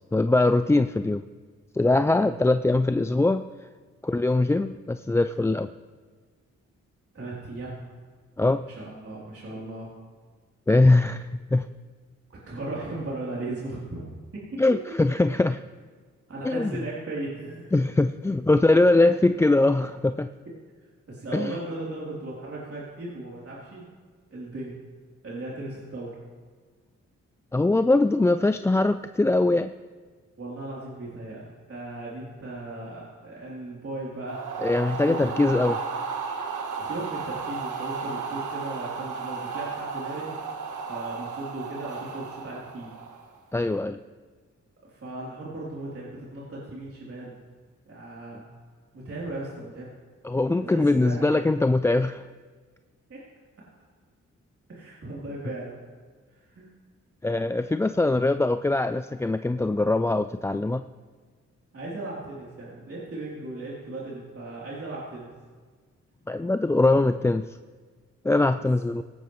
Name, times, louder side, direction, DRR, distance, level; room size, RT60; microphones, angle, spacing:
voice 1, 0.1-1.2 1.7-3.4 4.0-5.7 8.4-8.6 10.7-11.7 14.6-15.6 16.4-16.7 17.7-20.3 21.3-21.5 27.5-29.7 34.6-35.7 43.5-44.0 50.2-52.2 57.2-60.8 66.3-67.4 68.2-69.0, left 2 dB, 10° left, 10 dB, 0.3 m, -22 dB
voice 2, 7.1-7.8 8.7-9.9 12.5-14.2 16.3-17.8 21.1-23.9 24.3-24.7 25.2-26.2 30.4-34.4 34.8-35.6 36.8-40.3 40.9-42.9 44.8-47.3 47.8-48.5 48.9-49.9 50.6-51.4 53.1-53.2 54.7-55.8 56.3-56.7 61.7-65.3, right 2 dB, 50° right, -6 dB, 3.4 m, -37 dB
sound 1, 34.3-43.4, right 5 dB, 85° right, 1.3 m, -34 dB
17.0 x 13.0 x 3.2 m, 1.5 s
cardioid pair, 55°, 29 cm